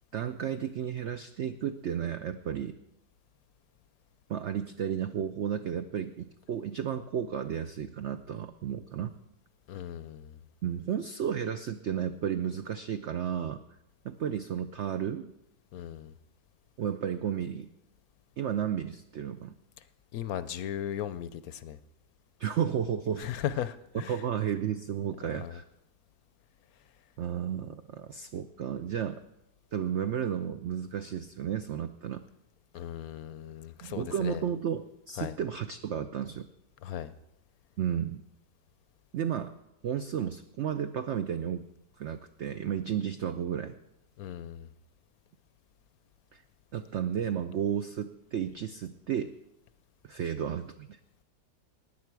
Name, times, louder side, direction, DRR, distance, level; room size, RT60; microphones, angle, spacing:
voice 1, 0.1-2.8 4.3-9.2 10.6-13.6 14.0-15.3 16.8-17.7 18.4-19.5 22.4-23.3 24.1-25.6 27.2-29.2 29.7-32.2 33.8-36.5 37.8-38.2 39.1-39.5 39.8-41.7 42.0-43.8 46.3-46.4 46.7-49.3 50.0-51.0, right 9 dB, 75° right, 9 dB, 0.6 m, -33 dB
voice 2, 9.7-10.3 15.7-16.1 20.1-21.8 23.2-24.2 25.3-25.6 32.7-34.4 35.2-35.3 36.8-37.1 44.2-44.7, left 10 dB, 70° left, 14 dB, 1.0 m, -37 dB
16.0 x 10.0 x 4.6 m, 0.88 s
omnidirectional pair, 1.8 m